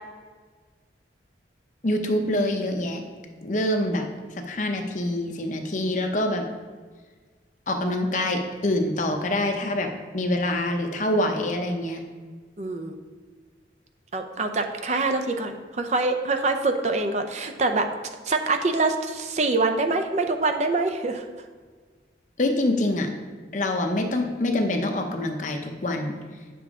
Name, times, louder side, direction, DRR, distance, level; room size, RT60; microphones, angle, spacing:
voice 1, 1.8-3.0 3.4-4.1 4.5-6.4 7.7-12.0 22.4-23.1 23.5-26.1, left 1 dB, 40° left, 4 dB, 0.8 m, -25 dB
voice 2, 12.6-13.0 14.1-17.9 18.3-21.3, right 3 dB, 40° right, 6 dB, 0.5 m, -25 dB
9.5 x 6.9 x 3.6 m, 1.5 s
head